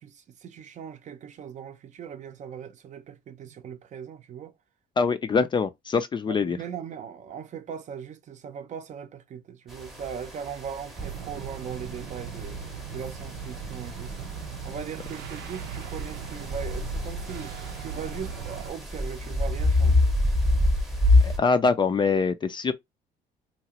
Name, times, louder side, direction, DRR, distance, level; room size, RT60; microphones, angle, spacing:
voice 1, 0.0-4.5 6.3-12.6 12.9-14.3 14.6-20.1, right 8 dB, 45° right, 0.6 m, -39 dB
voice 2, 5.0-6.6 21.2-22.7, left 4 dB, 25° left, 0.4 m, -24 dB
sound 1, 9.7-21.4, left 2 dB, ahead, 0.7 m, -27 dB
sound 2, 11.0-18.7, right 6 dB, 85° right, 0.6 m, -38 dB
2.9 x 2.4 x 2.9 m
cardioid pair, 110°, 17 cm